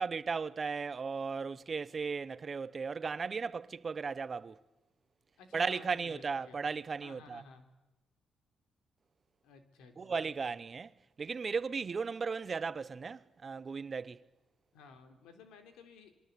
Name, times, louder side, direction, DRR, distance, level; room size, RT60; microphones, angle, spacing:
voice 1, 0.0-4.6 5.5-7.4 10.0-14.2, right 5 dB, 35° right, 0.9 m, -36 dB
voice 2, 5.4-6.6 7.0-7.7 9.4-10.3 14.7-16.2, left 4 dB, 90° left, 3.7 m, -55 dB
28.0 x 22.5 x 8.4 m
cardioid pair, 90°, 0 cm